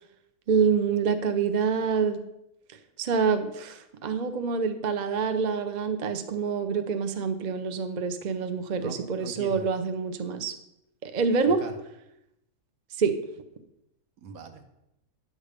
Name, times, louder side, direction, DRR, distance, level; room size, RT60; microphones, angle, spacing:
voice 1, 0.5-2.2 3.0-10.5 11.0-11.6 13.0-13.1, right 5 dB, 45° right, 7 dB, 0.6 m, -26 dB
voice 2, 8.8-9.7 11.4-11.7 14.2-14.7, right 4 dB, 70° right, 6 dB, 1.4 m, -42 dB
9.6 x 6.6 x 5.0 m, 0.84 s
omnidirectional pair, 1.6 m